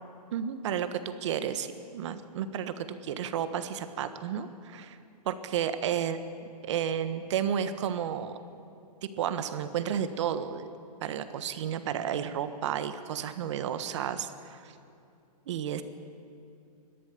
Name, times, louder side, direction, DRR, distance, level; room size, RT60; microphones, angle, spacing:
voice 1, 0.3-5.0 5.2-6.2 6.6-8.3 9.0-10.6 11.0-14.6 15.5-15.8, right 9 dB, 45° right, 11 dB, 1.3 m, -32 dB
30.0 x 12.5 x 7.1 m, 2.6 s
hypercardioid pair, 160°, 20 cm